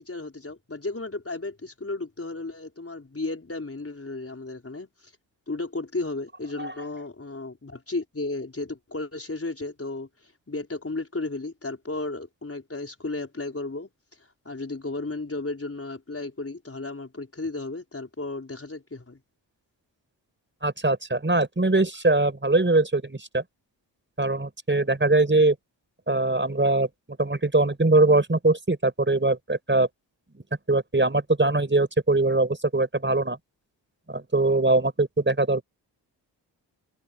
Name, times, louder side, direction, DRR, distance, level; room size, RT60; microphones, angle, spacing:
voice 1, 0.0-4.9 5.5-10.1 10.5-13.9 14.4-19.2, left 2 dB, 30° left, 5.1 m, -34 dB
voice 2, 20.6-23.4 24.2-25.6 26.1-26.9 27.2-29.9 30.7-33.4 34.1-35.6, right 2 dB, 25° right, 5.6 m, -22 dB
supercardioid pair, 45°, 47 cm